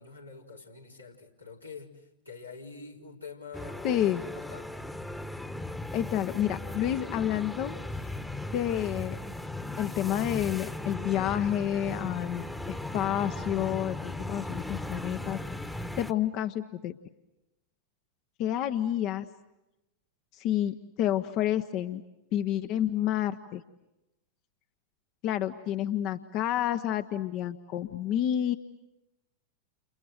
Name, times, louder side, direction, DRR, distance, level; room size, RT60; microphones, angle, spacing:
voice 1, 0.0-3.9 4.3-4.8, left 4 dB, 90° left, -3 dB, 4.6 m, -46 dB
sound 1, 3.5-16.1, left 1 dB, 5° left, 1.3 m, -37 dB
voice 2, 3.8-4.2 5.9-7.7 8.5-9.2 9.8-16.9 18.4-19.3 20.3-22.0 22.3-23.6 25.2-28.6, left 11 dB, 40° left, 10 dB, 1.0 m, -29 dB
30.0 x 29.5 x 6.5 m, 0.95 s
figure-of-eight pair, 90°, 0 cm